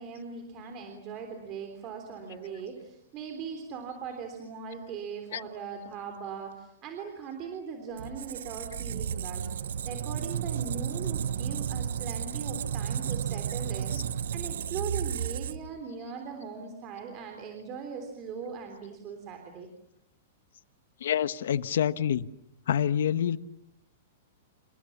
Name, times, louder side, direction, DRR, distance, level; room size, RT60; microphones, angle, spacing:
voice 1, 0.0-9.5 9.9-19.7, right 6 dB, 25° right, 3.5 m, -40 dB
Squeak, 8.0-15.8, right 8 dB, 75° right, 1.1 m, -33 dB
voice 2, 21.0-22.3 22.7-23.4, left 9 dB, 70° left, 1.2 m, -27 dB
29.5 x 28.0 x 7.2 m
supercardioid pair, 175°, 0 cm